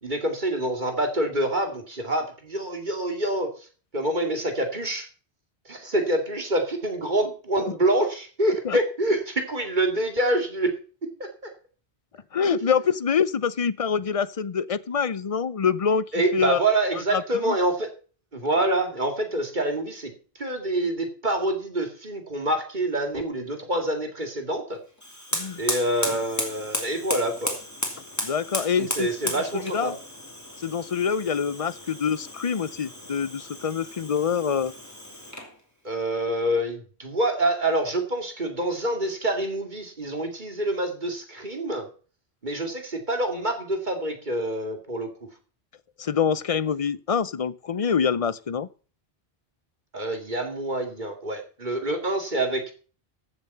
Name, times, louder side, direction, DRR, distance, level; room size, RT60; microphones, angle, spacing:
voice 1, 0.0-3.5 3.9-5.1 5.7-10.7 11.2-11.5 12.5-12.6 16.1-17.9 18.3-20.1 20.4-24.8 25.6-27.6 28.8-29.9 35.8-41.9 42.4-45.1 49.9-52.7, right 1 dB, 45° right, 2.6 m, -26 dB
voice 2, 12.3-16.6 17.1-17.6 25.3-25.6 28.2-29.1 29.4-30.0 30.6-34.7 46.0-48.7, left 6 dB, 40° left, 0.6 m, -25 dB
Fire, 25.0-35.6, left 1 dB, 15° left, 3.0 m, -34 dB
15.0 x 7.3 x 5.6 m
omnidirectional pair, 1.1 m